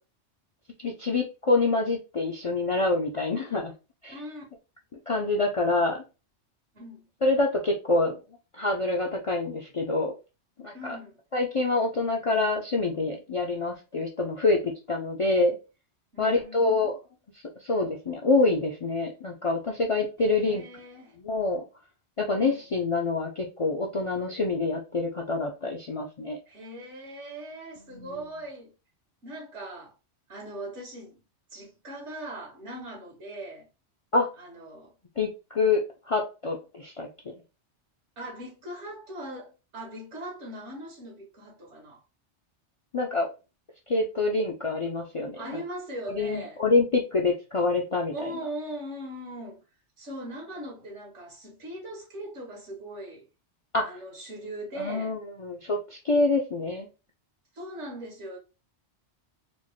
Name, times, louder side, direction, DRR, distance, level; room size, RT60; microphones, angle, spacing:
voice 1, 0.8-3.7 4.0-4.2 5.1-6.0 7.2-8.2 8.6-10.1 10.6-11.0 11.3-15.5 16.2-16.9 17.6-20.6 21.2-21.6 22.2-26.4 27.9-28.2 34.1-34.3 35.2-35.8 36.1-37.3 42.9-43.3 43.9-45.6 46.1-48.1 53.7-54.0 54.8-56.9, left 3 dB, 55° left, 0.3 m, -26 dB
voice 2, 4.1-4.4 6.7-7.1 10.7-11.2 16.1-16.9 20.2-21.2 22.3-22.6 26.5-28.7 29.2-29.9 30.3-31.2 31.5-33.7 34.4-34.9 38.2-42.0 45.3-46.6 48.1-49.6 50.0-53.3 53.8-55.2 57.5-58.4, right 1 dB, 80° right, 1.8 m, -40 dB
4.3 x 2.1 x 3.0 m
omnidirectional pair, 1.2 m